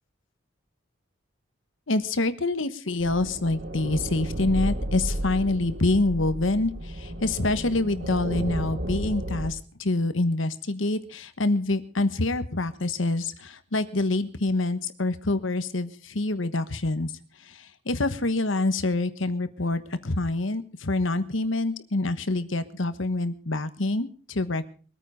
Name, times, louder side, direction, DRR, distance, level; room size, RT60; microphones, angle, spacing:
voice 1, 1.9-17.1 17.4-24.6, left 2 dB, 75° left, 12 dB, 1.2 m, -26 dB
sound 1, 3.0-9.5, right 1 dB, 50° right, 1.4 m, -33 dB
22.5 x 9.2 x 5.1 m, 0.40 s
head